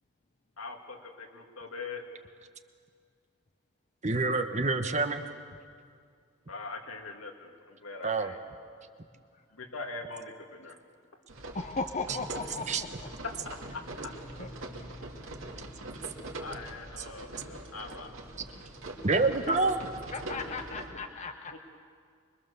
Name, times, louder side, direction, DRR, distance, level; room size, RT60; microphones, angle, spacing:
voice 1, 0.6-2.0 6.5-8.4 9.5-10.8 13.2-14.1 16.4-18.1 20.3-20.7 21.5-21.6, left 3 dB, 80° left, 3 dB, 2.3 m, -42 dB
voice 2, 4.0-5.2 8.0-8.3 12.7-12.8 19.0-19.8, right 3 dB, 35° right, 8 dB, 1.1 m, -27 dB
sound 1, 11.3-20.9, right 1 dB, 70° right, 2.8 m, -43 dB
voice 3, 11.5-12.9 14.4-14.5 19.5-19.6 20.1-21.6, left 4 dB, 35° left, 6 dB, 0.7 m, -36 dB
24.5 x 22.5 x 7.0 m, 2.2 s
head